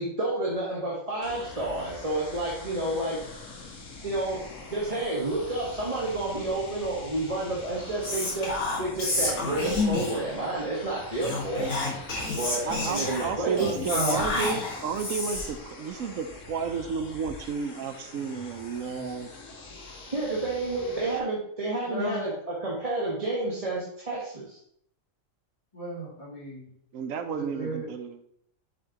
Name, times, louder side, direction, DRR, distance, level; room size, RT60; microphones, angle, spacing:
voice 1, 0.0-3.2 4.0-4.4 4.7-11.7 12.4-13.7 14.3-14.4 20.1-22.3 22.6-24.6, right 2 dB, 25° right, -6 dB, 1.4 m, -30 dB
sound 1, 1.2-21.2, left 3 dB, 65° left, 1.5 m, -44 dB
Whispering, 8.0-10.3 11.2-15.6, left 2 dB, 85° left, 2.3 m, -30 dB
voice 2, 12.6-19.3 26.9-28.2, right 6 dB, 75° right, 8 dB, 1.1 m, -32 dB
voice 3, 13.8-14.2 20.9-21.0 21.8-22.2 25.7-26.7 27.3-27.9, right 1 dB, 25° left, -7 dB, 2.6 m, -33 dB
7.2 x 6.1 x 2.9 m, 0.68 s
omnidirectional pair, 1.4 m